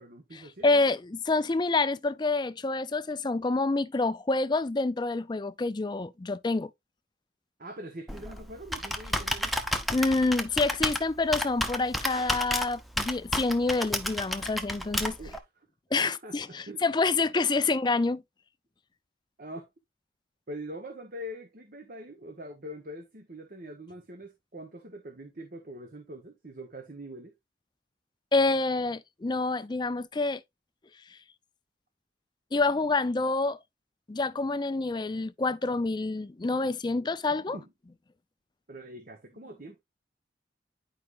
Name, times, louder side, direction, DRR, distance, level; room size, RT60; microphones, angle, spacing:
voice 1, 0.0-0.9 7.6-9.6 15.2-15.7 16.0-16.8 17.4-17.5 19.4-19.7 20.5-27.3 37.5-37.7 38.7-39.8, equal, 50° right, 1.2 m, -43 dB
voice 2, 0.6-6.7 9.9-15.2 15.9-18.2 28.3-30.4 31.1-31.2 32.5-33.6 34.1-37.6, left 3 dB, 25° left, 0.4 m, -27 dB
Computer keyboard, 8.1-15.4, equal, ahead, 0.8 m, -32 dB
10.5 x 5.0 x 2.5 m
head